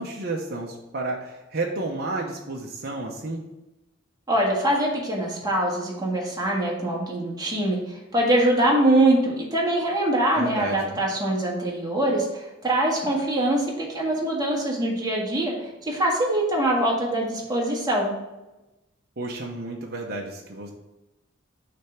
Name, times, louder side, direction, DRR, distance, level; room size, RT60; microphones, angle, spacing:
voice 1, 0.0-3.4 10.3-11.0 19.2-20.7, right 2 dB, 55° right, -1 dB, 0.8 m, -31 dB
voice 2, 4.3-18.1, right 1 dB, 20° right, -3 dB, 1.6 m, -23 dB
6.3 x 3.4 x 5.8 m, 0.99 s
head